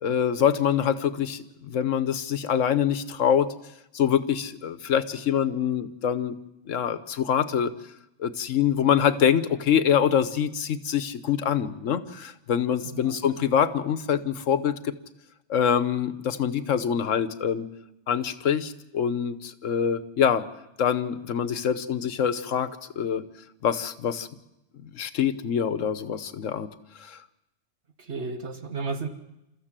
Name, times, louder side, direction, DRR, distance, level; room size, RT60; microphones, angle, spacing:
voice 1, 0.0-3.5 3.9-6.3 6.7-7.7 8.2-14.9 15.5-17.7 18.1-20.5 20.8-22.7 23.0-23.2 23.6-24.3 24.8-26.7 27.0-27.2, left 8 dB, 85° left, 13 dB, 1.3 m, -25 dB
voice 2, 12.8-13.3 28.0-29.1, right 4 dB, 65° right, 7 dB, 1.7 m, -33 dB
29.0 x 14.0 x 7.5 m, 0.91 s
omnidirectional pair, 1.3 m